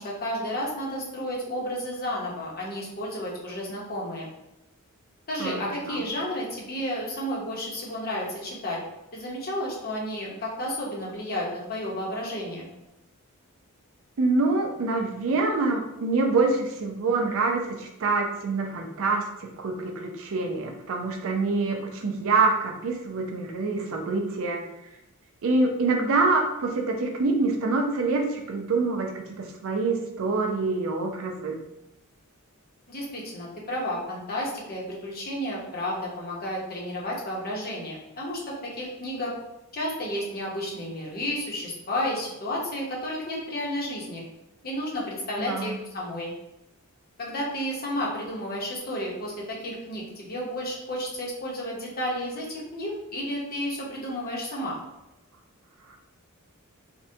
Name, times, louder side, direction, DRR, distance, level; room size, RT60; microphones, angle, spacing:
voice 1, 0.0-4.3 5.3-8.8 9.1-12.7 32.9-39.3 39.7-44.2 44.6-46.3 47.2-54.8, equal, 45° left, -3 dB, 0.8 m, -32 dB
voice 2, 14.2-24.6 25.4-31.6 45.4-45.8, right 3 dB, 65° right, 3 dB, 0.5 m, -26 dB
3.5 x 2.1 x 2.6 m, 0.89 s
head